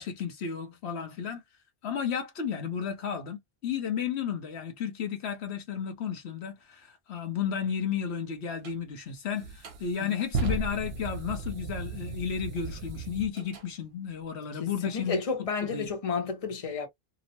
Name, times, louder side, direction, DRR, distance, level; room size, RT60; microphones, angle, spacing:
voice 1, 0.0-1.4 1.8-15.9, left 7 dB, 70° left, 1.0 m, -33 dB
sound 1, 8.6-8.8 9.4-13.7, right 3 dB, 65° right, 1.0 m, -35 dB
voice 2, 14.5-16.9, left 5 dB, 35° left, 0.8 m, -32 dB
2.9 x 2.0 x 2.7 m
omnidirectional pair, 1.2 m